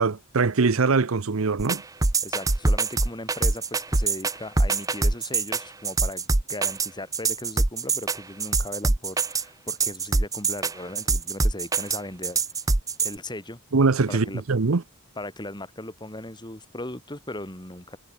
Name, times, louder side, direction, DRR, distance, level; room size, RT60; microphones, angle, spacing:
voice 1, 0.0-1.8 13.7-14.8, right 4 dB, 75° right, 0.8 m, -22 dB
sound 1, 1.6-13.2, right 3 dB, 15° right, 0.6 m, -24 dB
voice 2, 2.2-12.4 13.0-13.6 14.1-14.4 15.2-18.0, left 1 dB, 20° left, 5.0 m, -38 dB
head